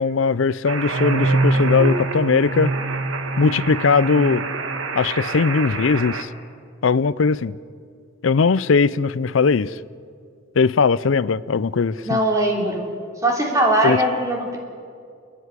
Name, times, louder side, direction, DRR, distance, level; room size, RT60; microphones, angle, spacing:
voice 1, 0.0-2.7 3.4-4.5 5.0-6.3 6.8-7.6 8.2-9.8 10.6-12.2 13.8-14.0, left 5 dB, 75° left, 0.5 m, -19 dB
sound 1, 0.7-6.2, right 4 dB, 85° right, 1.5 m, -30 dB
sound 2, 0.9-5.4, right 2 dB, 55° right, 1.6 m, -24 dB
voice 2, 12.0-12.8 13.2-14.6, right 1 dB, 15° right, 3.3 m, -20 dB
29.0 x 10.5 x 9.8 m
head